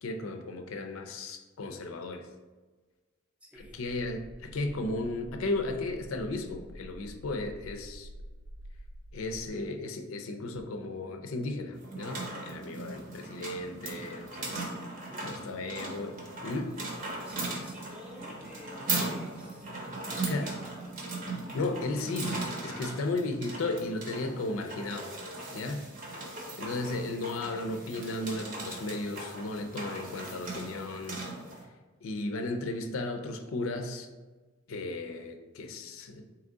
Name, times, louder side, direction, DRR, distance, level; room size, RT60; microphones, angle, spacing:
voice 1, 0.0-2.3 3.5-8.1 9.1-14.6 15.0-16.2 16.4-16.8 20.3-20.5 21.5-25.1 25.5-25.9 26.2-31.2 32.0-34.1 34.7-36.2, left 2 dB, 75° left, 5 dB, 0.4 m, -35 dB
voice 2, 3.4-3.8 15.1-15.6 17.0-21.0 22.7-23.0, left 1 dB, 5° right, 0 dB, 0.5 m, -50 dB
sound 1, 3.6-9.5, equal, 75° right, 0.4 m, -48 dB
sound 2, 11.8-31.6, right 2 dB, 40° right, 0.7 m, -38 dB
3.5 x 3.0 x 3.7 m, 1.3 s
head